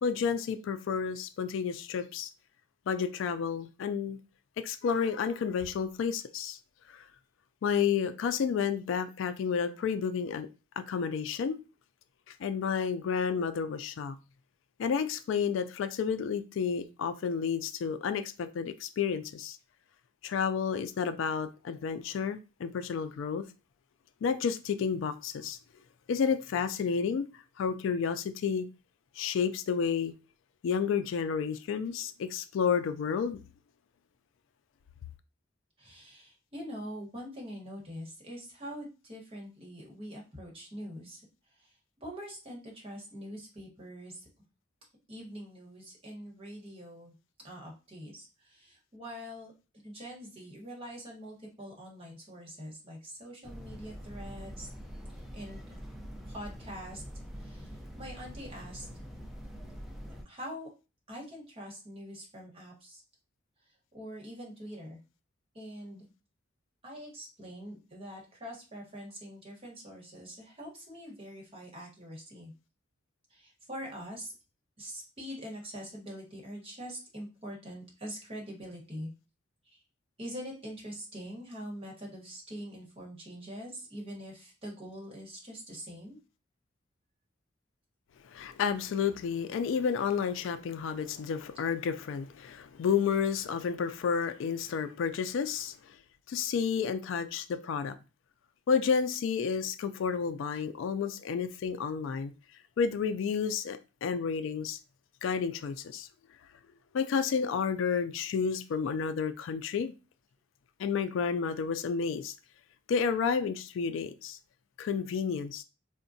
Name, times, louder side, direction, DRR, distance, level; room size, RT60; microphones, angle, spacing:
voice 1, 0.0-2.3 2.9-4.2 4.6-6.6 6.9-7.0 7.6-10.5 10.8-11.6 12.3-14.2 14.8-19.6 20.2-23.4 24.2-25.6 26.1-27.3 27.6-28.7 29.2-30.1 30.6-33.4 88.3-95.7 96.3-97.9 98.7-102.3 102.8-104.8 105.2-106.1 106.9-109.9 110.8-112.3 112.9-114.4 114.8-115.6, left 6 dB, 65° left, 0.3 m, -31 dB
voice 2, 35.8-41.2 41.6-44.3 45.1-47.1 47.4-49.5 49.8-54.7 55.3-55.8 56.3-57.0 57.4-58.9 60.2-60.7 61.1-63.0 63.9-65.0 65.5-66.1 66.8-72.5 73.3-74.3 74.8-79.1 79.6-79.8 80.2-86.2, equal, 30° right, 1.1 m, -44 dB
sound 1, 53.4-60.2, equal, ahead, 0.5 m, -44 dB
3.6 x 2.1 x 2.6 m
head